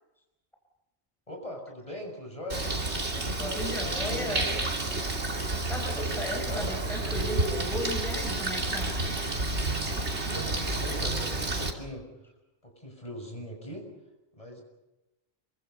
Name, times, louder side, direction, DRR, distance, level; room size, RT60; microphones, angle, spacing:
voice 1, 1.3-2.6 3.1-4.6 5.7-6.8 10.2-12.1 12.6-13.9 14.3-14.6, left 1 dB, 30° left, 2 dB, 6.9 m, -40 dB
Bird, 2.5-11.7, right 2 dB, 75° right, 3.1 m, -30 dB
voice 2, 3.4-4.5 5.7-8.9, equal, ahead, 1 dB, 4.6 m, -35 dB
27.5 x 24.5 x 5.6 m, 0.97 s
omnidirectional pair, 1.1 m